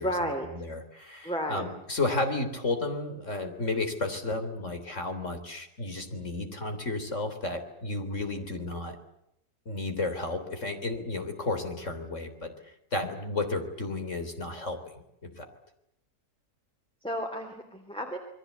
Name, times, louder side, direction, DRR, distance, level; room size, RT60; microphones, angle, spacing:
voice 1, 0.0-0.7 1.2-1.7 17.0-18.2, equal, 5° left, 3 dB, 3.2 m, -32 dB
voice 2, 0.5-9.0 9.7-12.5 12.9-15.5, left 2 dB, 50° left, 7 dB, 3.7 m, -32 dB
28.0 x 22.0 x 8.1 m, 0.78 s
omnidirectional pair, 1.7 m